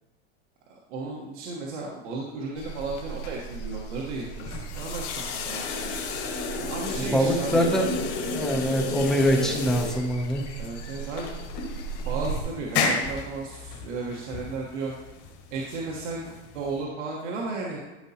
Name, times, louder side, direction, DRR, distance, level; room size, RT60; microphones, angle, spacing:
voice 1, 0.7-6.0 6.6-7.6 9.4-9.6 10.6-11.4 12.0-14.9 15.5-17.8, right 3 dB, 80° right, -3 dB, 1.3 m, -34 dB
sound 1, 2.6-12.4, right 4 dB, 80° left, 1.3 m, -38 dB
sound 2, 4.4-16.8, left 4 dB, 40° left, 1.7 m, -32 dB
voice 2, 7.0-10.4, equal, ahead, 0 dB, 0.6 m, -24 dB
12.5 x 5.2 x 2.8 m, 1.2 s
supercardioid pair, 165°, 36 cm